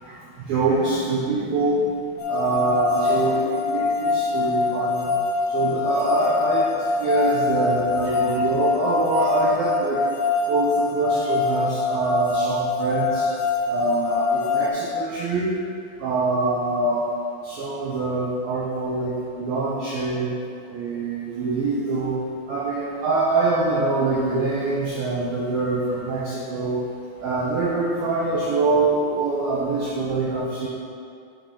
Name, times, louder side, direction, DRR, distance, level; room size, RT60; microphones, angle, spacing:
voice 1, 0.0-1.9 2.3-5.1 5.5-10.0 10.5-13.3 13.7-15.5 16.0-17.1 17.4-20.3 20.7-22.2 22.5-26.8 27.2-30.7, right 3 dB, 85° right, -6 dB, 2.1 m, -24 dB
sound 1, 2.2-14.7, left 4 dB, 80° left, 2.8 m, -24 dB
9.4 x 4.3 x 4.8 m, 2.4 s
omnidirectional pair, 5.2 m